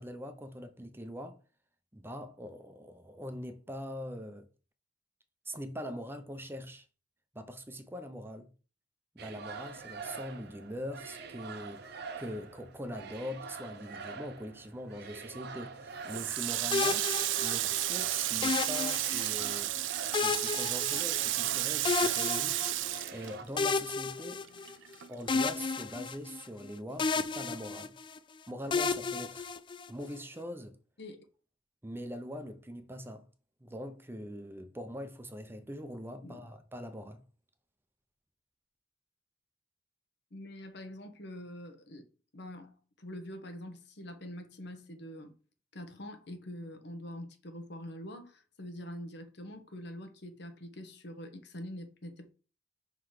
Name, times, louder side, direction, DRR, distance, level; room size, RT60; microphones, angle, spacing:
voice 1, 0.0-1.4 1.9-4.5 5.5-6.8 7.3-8.5 9.1-19.7 20.1-24.5 25.1-27.9 28.5-29.5 29.9-30.8 31.8-33.3 33.6-37.2, equal, 10° right, 0.6 m, -42 dB
sound 1, 9.2-23.4, right 4 dB, 60° right, 0.8 m, -46 dB
Water tap faucet, 16.1-23.9 24.2-25.6, right 16 dB, 85° right, 0.4 m, -32 dB
sound 2, 16.7-17.9 18.4-19.6 20.1-21.5 21.9-23.0 23.6-24.9 25.3-26.7 27.0-28.2 28.7-30.1, left 4 dB, 25° left, 0.4 m, -32 dB
voice 2, 40.3-42.0 42.3-45.3 45.7-52.3, left 1 dB, 65° left, 1.1 m, -45 dB
5.7 x 3.9 x 4.8 m
head